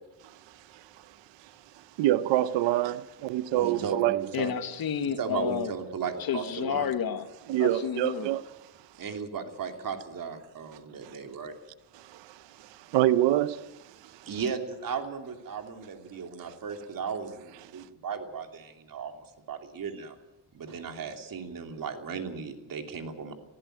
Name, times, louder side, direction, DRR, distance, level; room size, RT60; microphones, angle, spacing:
voice 1, 0.5-1.2 1.4-1.5 2.0-4.2 7.5-8.4 11.0-11.1 11.9-14.3 16.4-16.5 17.7-17.8, right 14 dB, 90° right, 0.9 m, -27 dB
voice 2, 3.5-4.5 5.2-6.9 9.0-11.5 14.3-20.2 20.5-23.3, right 6 dB, 50° right, 2.9 m, -36 dB
voice 3, 4.3-5.7 6.2-7.3 7.6-8.3, left 8 dB, 55° left, 1.7 m, -30 dB
20.0 x 15.0 x 9.1 m
cardioid pair, 110°, 42 cm